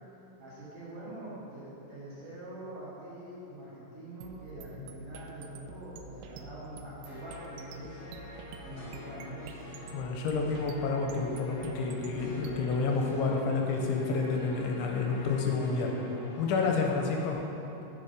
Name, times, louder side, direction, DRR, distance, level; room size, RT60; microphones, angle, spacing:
voice 1, 0.4-8.2 8.6-9.6, right 1 dB, 55° right, -9 dB, 2.8 m, -44 dB
sound 1, 4.2-12.8, right 2 dB, 85° right, 2.8 m, -48 dB
sound 2, 7.0-17.3, left 1 dB, 65° left, 1.5 m, -48 dB
voice 2, 9.9-15.9 16.4-17.4, left 4 dB, 85° left, 1 dB, 3.1 m, -29 dB
9.7 x 7.2 x 5.3 m, 3.0 s
omnidirectional pair, 5.5 m